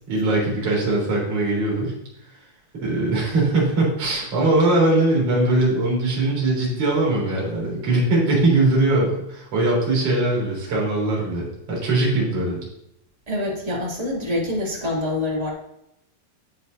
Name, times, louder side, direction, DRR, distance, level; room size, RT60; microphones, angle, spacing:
voice 1, 0.1-1.9 2.8-12.6, right 2 dB, 40° right, -4 dB, 4.6 m, -21 dB
voice 2, 13.3-15.5, left 1 dB, 10° right, -4 dB, 2.1 m, -25 dB
12.0 x 7.7 x 2.7 m, 0.81 s
omnidirectional pair, 4.2 m